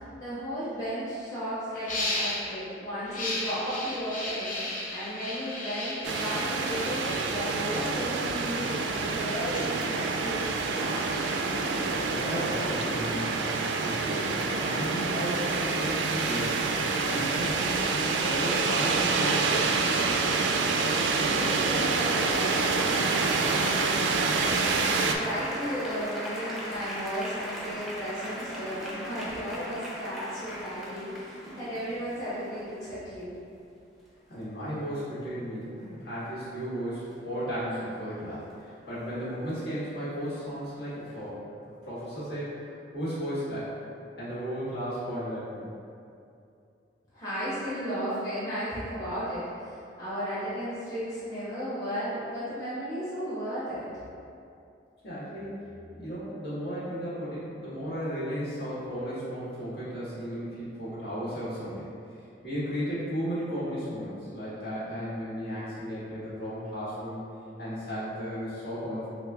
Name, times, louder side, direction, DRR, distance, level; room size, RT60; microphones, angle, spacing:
voice 1, 0.2-10.4 10.7-11.1 21.2-33.3 47.1-53.9, equal, 20° left, -13 dB, 1.1 m, -35 dB
sound 1, 0.6-0.7 1.0-1.2 1.7-2.5 3.0-8.3 8.7-14.5, left 1 dB, 45° left, 0.7 m, -36 dB
sound 2, 6.0-25.2, right 4 dB, 90° right, 0.3 m, -27 dB
voice 2, 11.7-13.3 13.8-19.8 34.3-41.4 41.9-43.7 44.2-45.7 55.0-61.9 62.4-67.2 67.6-69.1, equal, 65° left, -11 dB, 1.5 m, -35 dB
sound 3, 22.1-32.9 34.8-34.9 35.2-35.5 39.5-39.7, equal, ahead, 0.6 m, -39 dB
6.3 x 2.2 x 2.3 m, 2.5 s
head